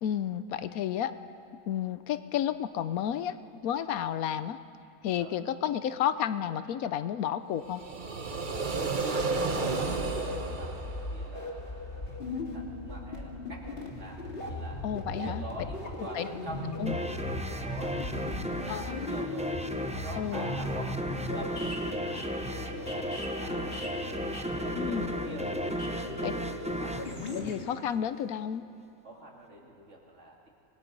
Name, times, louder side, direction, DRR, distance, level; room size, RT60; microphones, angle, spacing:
voice 1, 0.0-1.1 1.7-4.6 5.0-7.8 14.8-15.4 16.1-16.3 16.8-16.9 18.7-18.9 20.2-20.5 24.7-25.2 26.2-26.3 27.3-28.6, left 9 dB, 80° left, 13 dB, 1.1 m, -31 dB
sound 1, 7.6-11.6, right 3 dB, 35° right, 1.1 m, -32 dB
voice 2, 8.6-14.8 15.1-19.5 19.9-23.7 24.1-27.0 29.0-30.5, right 1 dB, 55° right, -1 dB, 2.9 m, -47 dB
sound 2, 9.3-27.5, left 2 dB, 40° left, 2.5 m, -38 dB
sound 3, 16.9-28.1, equal, 5° right, 0.5 m, -35 dB
26.5 x 20.0 x 5.3 m, 2.6 s
omnidirectional pair, 1.5 m